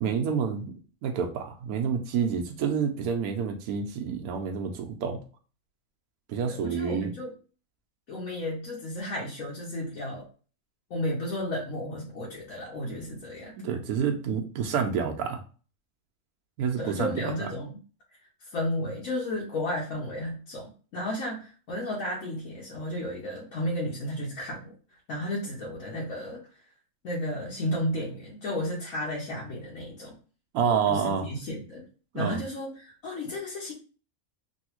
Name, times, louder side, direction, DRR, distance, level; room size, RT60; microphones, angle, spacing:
voice 1, 0.0-0.7 1.0-5.2 6.3-7.1 13.6-15.4 16.6-17.5 30.5-31.3 32.1-32.4, right 6 dB, 90° right, 3 dB, 1.1 m, -28 dB
voice 2, 6.5-7.3 8.1-10.3 10.9-13.5 16.8-17.7 18.4-24.7 25.1-26.5 27.0-30.2 30.9-31.9 32.1-33.7, left 1 dB, 70° left, -4 dB, 1.2 m, -33 dB
3.1 x 2.7 x 2.9 m, 0.37 s
omnidirectional pair, 1.5 m